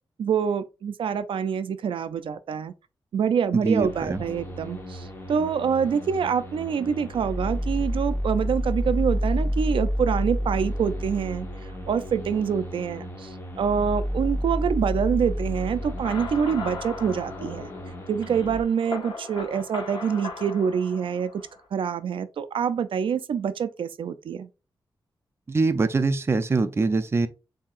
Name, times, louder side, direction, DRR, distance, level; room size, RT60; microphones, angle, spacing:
voice 1, 0.2-2.7 3.1-11.5 11.9-17.7 18.1-21.3 21.7-24.5, right 7 dB, 90° right, 0.4 m, -26 dB
voice 2, 3.6-4.2 25.5-27.3, right 3 dB, 30° right, 0.5 m, -23 dB
sound 1, 3.8-18.6, equal, 25° left, 1.1 m, -30 dB
sound 2, 15.8-21.6, left 4 dB, 85° left, 1.3 m, -38 dB
7.4 x 2.8 x 2.4 m
wide cardioid pair, 125°, 9 cm